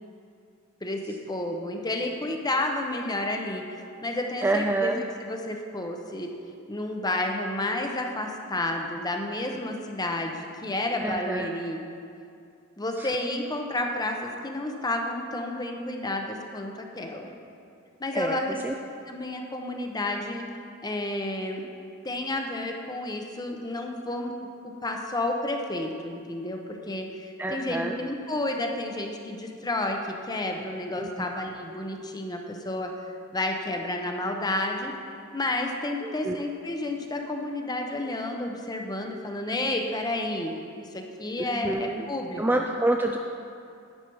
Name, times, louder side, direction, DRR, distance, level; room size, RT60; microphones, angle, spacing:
voice 1, 0.8-6.3 6.7-11.8 12.8-17.3 18.0-18.6 19.1-20.5 20.8-21.6 22.0-24.3 24.8-30.0 30.3-32.9 33.3-34.9 35.3-40.6 40.9-42.7, left 1 dB, 20° left, 3 dB, 0.8 m, -31 dB
voice 2, 4.4-5.0 11.0-11.5 18.1-18.4 18.6-18.7 27.4-28.0 31.0-31.1 36.0-36.4 41.5-42.1 42.4-43.2, right 2 dB, 10° right, 2 dB, 0.3 m, -27 dB
11.0 x 8.6 x 4.6 m, 2.5 s
head